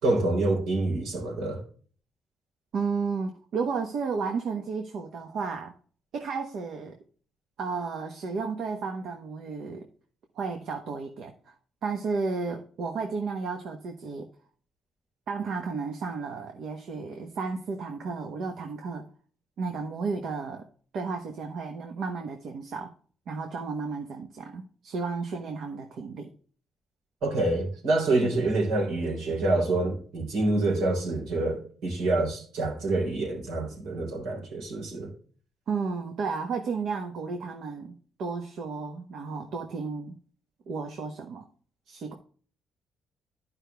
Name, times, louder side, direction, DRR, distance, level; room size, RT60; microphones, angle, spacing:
voice 1, 0.0-1.6 27.2-35.1, right 2 dB, 85° right, 3.7 m, -27 dB
voice 2, 2.7-5.7 6.1-6.9 7.6-9.9 10.3-11.5 11.8-14.3 15.3-19.1 19.6-20.6 20.9-22.9 23.3-26.3 28.2-28.4 35.7-40.1 40.7-41.4 41.9-42.1, right 4 dB, 70° right, 1.2 m, -33 dB
11.5 x 5.4 x 3.5 m
cardioid pair, 90°, 0 cm